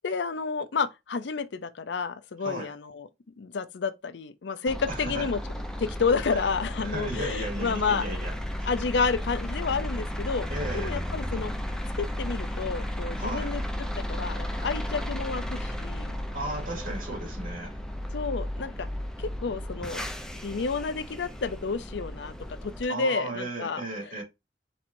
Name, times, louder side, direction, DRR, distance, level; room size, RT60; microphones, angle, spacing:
voice 1, 0.0-3.1 3.4-5.4 5.8-8.1 8.6-10.5 10.7-11.5 12.0-16.1 18.1-18.9 19.2-20.1 20.4-22.3 22.6-24.2, left 5 dB, 80° left, 0.5 m, -30 dB
voice 2, 2.4-2.7 4.9-5.3 6.8-8.7 10.5-11.0 13.2-13.6 16.3-17.8 22.9-24.2, right 2 dB, 50° right, 2.5 m, -35 dB
sound 1, 4.7-22.8, equal, 5° left, 0.6 m, -34 dB
4.3 x 4.2 x 2.6 m
head